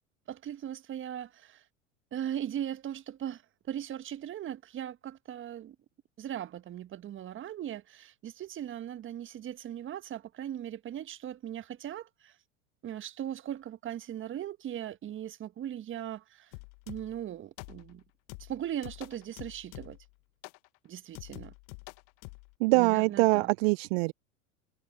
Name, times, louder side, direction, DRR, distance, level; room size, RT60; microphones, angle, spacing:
voice 1, 0.3-1.6 2.1-3.4 3.7-5.7 6.2-12.3 12.8-16.5 16.9-18.0 18.4-20.0 20.8-21.5 22.7-23.5, right 10 dB, 30° right, 1.4 m, -39 dB
sound 1, 16.5-17.2 17.6-18.0 18.3-20.1 20.4-20.7 21.1-22.5, left 32 dB, 50° left, 0.9 m, -47 dB
voice 2, 22.6-24.1, right 28 dB, 50° right, 0.5 m, -24 dB
hypercardioid pair, 85°, 39 cm